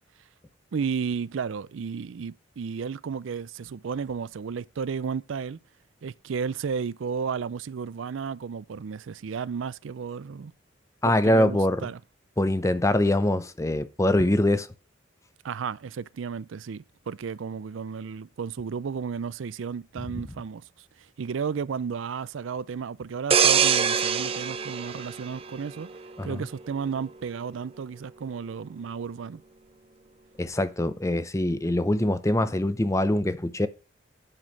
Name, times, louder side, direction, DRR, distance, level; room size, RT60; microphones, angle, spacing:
voice 1, 0.7-5.6 6.0-10.5 11.0-12.0 15.4-25.9 26.2-29.4, right 6 dB, 75° right, 0.4 m, -33 dB
voice 2, 11.0-11.8 12.4-14.7 26.2-26.4 30.4-33.7, left 1 dB, 15° left, 0.6 m, -23 dB
sound 1, 23.3-26.0 26.4-26.7, right 7 dB, 30° right, 0.6 m, -24 dB
8.9 x 6.3 x 5.3 m
head